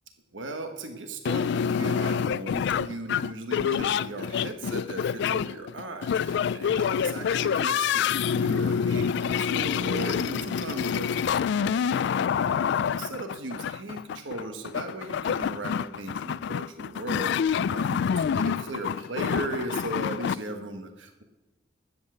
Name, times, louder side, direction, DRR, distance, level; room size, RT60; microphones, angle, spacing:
voice 1, 0.3-21.2, right 2 dB, 75° right, 5 dB, 1.3 m, -37 dB
sound 1, 1.2-20.3, left 7 dB, 65° left, 0.3 m, -27 dB
12.5 x 8.2 x 8.0 m, 1.1 s
head